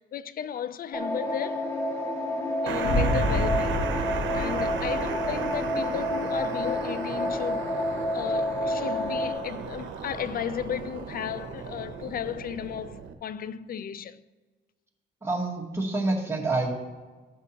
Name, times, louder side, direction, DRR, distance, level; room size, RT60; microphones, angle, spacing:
voice 1, 0.0-1.7 2.6-7.8 8.1-14.2, left 9 dB, 50° left, 0.4 m, -34 dB
sound 1, 0.9-9.3, left 1 dB, 15° left, 1.6 m, -29 dB
sound 2, 2.7-13.1, right 7 dB, 70° right, 0.8 m, -36 dB
sound 3, 2.8-5.8, equal, 65° left, 2.8 m, -29 dB
voice 2, 15.2-16.7, right 2 dB, 15° right, 1.9 m, -27 dB
15.0 x 6.2 x 2.8 m
cardioid pair, 90°, 20 cm